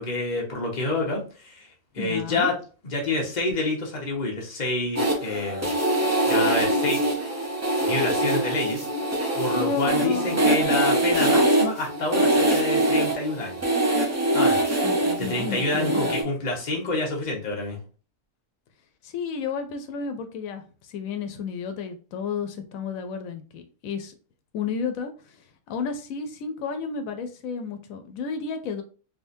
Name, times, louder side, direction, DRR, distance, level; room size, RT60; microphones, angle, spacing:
voice 1, 0.0-1.7 1.9-2.5 2.8-5.7 6.3-7.0 7.4-7.5 7.8-8.9 9.3-13.7 14.3-14.6 15.2-17.8, left 2 dB, 35° left, 1.1 m, -27 dB
voice 2, 2.0-2.5 9.5-10.5 14.8-16.2 19.0-24.1 24.5-25.4 25.7-28.8, left 6 dB, 85° left, 1.0 m, -32 dB
sound 1, 5.0-16.2, right 1 dB, 20° right, 0.4 m, -23 dB
3.6 x 2.7 x 2.6 m
omnidirectional pair, 1.4 m